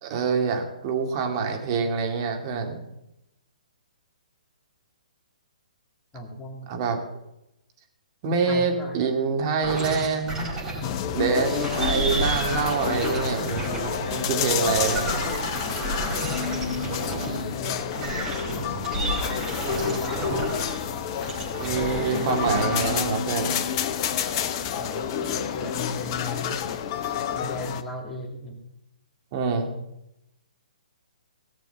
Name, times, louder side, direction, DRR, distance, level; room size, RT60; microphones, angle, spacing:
voice 1, 0.0-2.8 6.7-7.0 8.2-10.5 11.1-15.1 21.6-23.5 29.3-29.7, right 5 dB, 40° right, 4 dB, 2.3 m, -26 dB
voice 2, 6.1-6.7 8.2-9.0 16.4-18.2 18.5-18.7 19.6-20.5 24.7-26.6 27.3-28.6, left 1 dB, 10° left, 0 dB, 2.6 m, -37 dB
sound 1, 9.6-11.0 11.4-17.5 17.9-20.9 21.2-23.0, right 2 dB, 15° right, 4.5 m, -31 dB
sound 2, 10.8-27.8, left 8 dB, 35° left, 0.9 m, -29 dB
17.5 x 6.9 x 6.9 m, 0.86 s
figure-of-eight pair, 130°, 4 cm